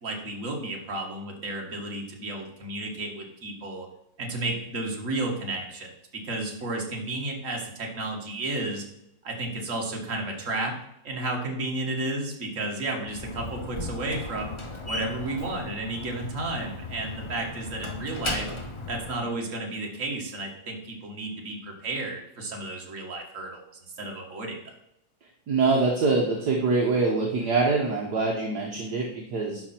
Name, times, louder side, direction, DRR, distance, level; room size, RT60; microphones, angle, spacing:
voice 1, 0.0-3.9 4.2-8.8 9.2-10.8 11.0-14.5 14.9-18.5 18.9-23.6 24.0-24.6, right 2 dB, 45° right, 1 dB, 2.0 m, -32 dB
Slam, 13.0-19.2, left 2 dB, 40° left, 0.4 m, -36 dB
voice 2, 25.5-29.6, right 3 dB, 60° right, -1 dB, 1.6 m, -24 dB
11.0 x 5.6 x 4.4 m, 0.79 s
omnidirectional pair, 2.0 m